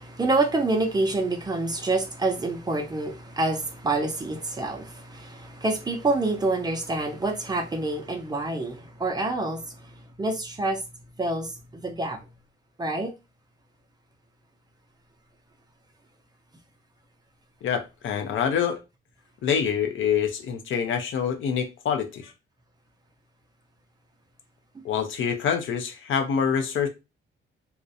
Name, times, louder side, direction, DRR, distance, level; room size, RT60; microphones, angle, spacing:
voice 1, 0.0-10.8 11.2-12.2 12.8-13.1, right 2 dB, 20° right, 0.4 m, -27 dB
voice 2, 17.6-18.8 19.4-22.3 24.8-26.9, left 7 dB, 70° left, 0.5 m, -26 dB
2.4 x 2.0 x 2.6 m
cardioid pair, 140°, 21 cm